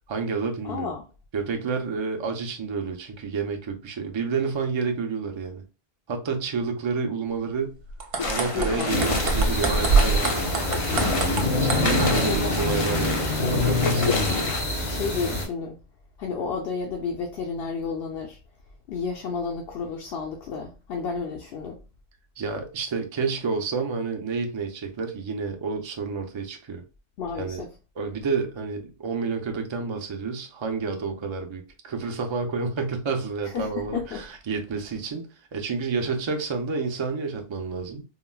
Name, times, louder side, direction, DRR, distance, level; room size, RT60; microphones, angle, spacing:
voice 1, 0.1-0.9 1.3-5.6 6.1-7.8 8.3-10.6 11.6-14.1 22.4-26.8 27.4-27.6 28.0-38.0, right 5 dB, 40° right, 0.4 m, -29 dB
voice 2, 0.6-1.0 8.5-8.9 12.2-12.7 14.1-14.5 14.8-15.8 16.2-18.4 18.9-21.8 27.2-27.7 33.4-34.2, left 5 dB, 70° left, 0.8 m, -32 dB
sound 1, 7.9-12.4, right 4 dB, 65° right, 0.8 m, -25 dB
sound 2, 8.2-14.6, left 3 dB, 45° left, 0.4 m, -30 dB
sound 3, 8.9-15.4, left 2 dB, 90° left, 1.5 m, -26 dB
3.7 x 2.0 x 2.2 m
omnidirectional pair, 1.1 m